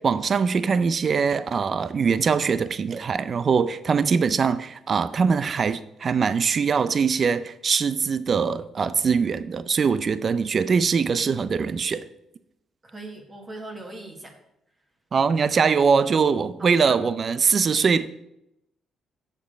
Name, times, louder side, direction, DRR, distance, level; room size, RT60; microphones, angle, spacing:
voice 1, 0.0-12.1 15.1-18.1, right 5 dB, 45° right, 0.4 m, -22 dB
voice 2, 12.8-14.4 16.6-17.0, right 2 dB, 25° right, 1.5 m, -39 dB
7.2 x 6.7 x 5.1 m
cardioid pair, 90°, 0 cm